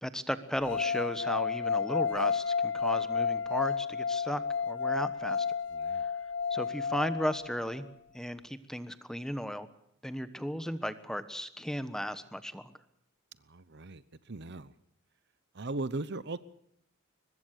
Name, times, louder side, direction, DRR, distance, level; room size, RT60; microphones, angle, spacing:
voice 1, 0.0-5.5 6.0-6.1 6.5-7.9 8.1-9.7 10.0-12.7, equal, 5° left, 12 dB, 1.1 m, -35 dB
sound 1, 0.6-7.7, left 6 dB, 60° left, 1.3 m, -31 dB
voice 2, 5.7-6.1 13.5-14.7 15.5-16.4, right 2 dB, 55° right, 16 dB, 0.9 m, -38 dB
23.0 x 21.0 x 6.6 m, 0.73 s
head